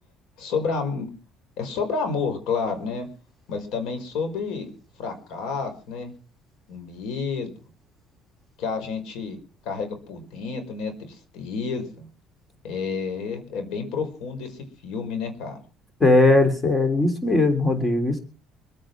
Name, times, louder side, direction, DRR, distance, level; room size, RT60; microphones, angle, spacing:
voice 1, 0.4-1.1 1.6-3.1 3.5-4.7 5.0-6.1 6.7-7.5 8.6-9.4 9.7-12.1 12.6-15.6, left 5 dB, 75° left, 7 dB, 5.2 m, -30 dB
voice 2, 16.0-18.2, left 2 dB, 20° left, 6 dB, 3.4 m, -19 dB
25.5 x 9.2 x 6.1 m, 0.38 s
cardioid pair, 125°, 0 cm